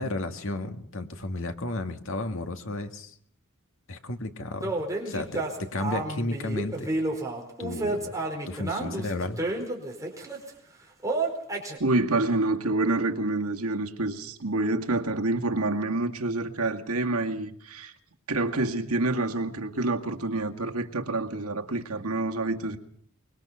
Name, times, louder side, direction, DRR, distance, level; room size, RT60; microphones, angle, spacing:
voice 1, 0.0-3.2 3.9-4.7 5.1-6.9 7.6-8.2 8.5-9.4, left 2 dB, 65° left, 2.1 m, -33 dB
sound 1, 4.6-10.5 11.0-11.8, right 2 dB, 15° right, 4.6 m, -30 dB
voice 2, 11.8-17.9 18.3-22.8, right 2 dB, 80° right, 2.1 m, -27 dB
24.5 x 23.0 x 5.8 m
head